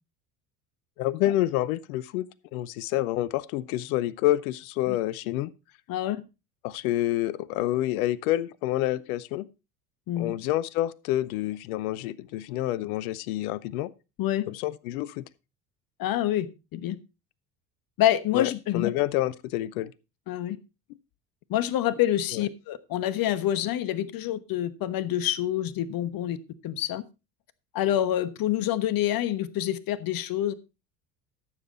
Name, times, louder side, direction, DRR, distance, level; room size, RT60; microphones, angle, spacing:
voice 1, 1.0-5.5 6.6-9.5 10.2-13.9 14.5-15.2 18.3-19.9 22.3-22.5, left 14 dB, 65° left, 0.8 m, -28 dB
voice 2, 16.0-16.5 16.7-17.0 18.0-18.9 20.3-20.6 21.5-26.4 26.6-27.0 27.7-30.5, left 12 dB, 45° left, 1.2 m, -27 dB
13.5 x 7.3 x 4.1 m
figure-of-eight pair, 65°, 48 cm